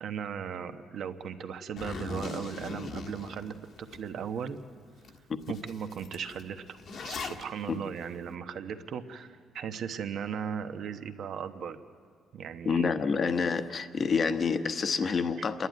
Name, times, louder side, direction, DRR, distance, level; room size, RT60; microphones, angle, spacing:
voice 1, 0.0-4.6 5.5-11.8 12.3-12.9, right 7 dB, 65° right, 8 dB, 1.0 m, -37 dB
Zipper (clothing), 1.8-4.0 4.5-4.6 5.0-5.2 5.4-7.4, left 3 dB, 60° left, 1.4 m, -39 dB
voice 2, 12.6-15.7, left 5 dB, 40° left, 9 dB, 1.0 m, -28 dB
28.0 x 11.5 x 9.4 m, 2.1 s
cardioid pair, 120°, 0 cm